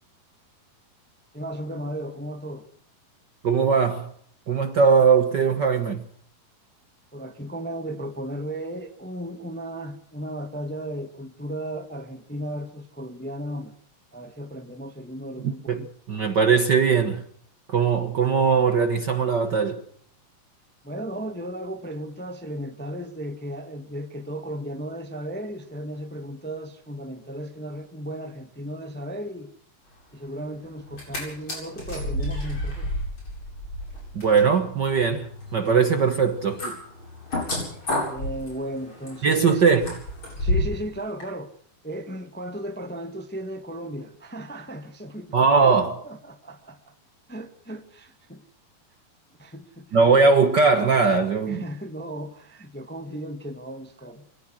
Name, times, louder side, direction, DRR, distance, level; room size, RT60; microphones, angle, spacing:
voice 1, 1.3-2.6 7.1-13.7 14.1-15.9 20.8-29.5 30.1-32.9 38.1-39.6 40.3-41.5 41.8-45.4 46.0-46.9 47.3-48.4 49.4-50.0 51.5-54.3, right 1 dB, 15° left, 0.4 m, -35 dB
voice 2, 3.4-4.1 4.5-6.0 15.4-15.8 16.1-17.2 17.7-19.8 34.1-36.8 39.2-39.9 45.3-46.0 49.9-51.6, right 5 dB, 80° right, 0.9 m, -20 dB
sound 1, 30.8-31.2 31.5-40.9 41.2-41.3, left 1 dB, 35° left, 8.9 m, -31 dB
23.5 x 17.5 x 6.2 m
omnidirectional pair, 4.1 m